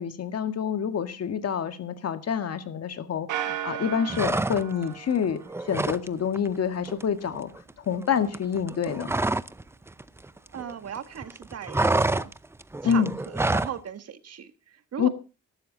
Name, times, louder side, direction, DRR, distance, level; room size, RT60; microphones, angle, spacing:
voice 1, 0.0-5.4 5.7-7.5 7.9-9.1 12.8-13.1 15.0-15.1, left 7 dB, 55° left, 9 dB, 1.9 m, -27 dB
sound 1, 3.3-6.0, right 11 dB, 85° right, 2.3 m, -35 dB
sound 2, 4.1-4.9 5.2-6.1 6.3-6.6 6.9-9.6 9.9-11.0 11.2-13.8, right 2 dB, 10° right, 0.6 m, -27 dB
voice 2, 10.5-12.3 12.8-15.1, right 8 dB, 55° right, 10 dB, 1.6 m, -38 dB
15.0 x 12.0 x 4.0 m, 0.34 s
cardioid pair, 90°, 30 cm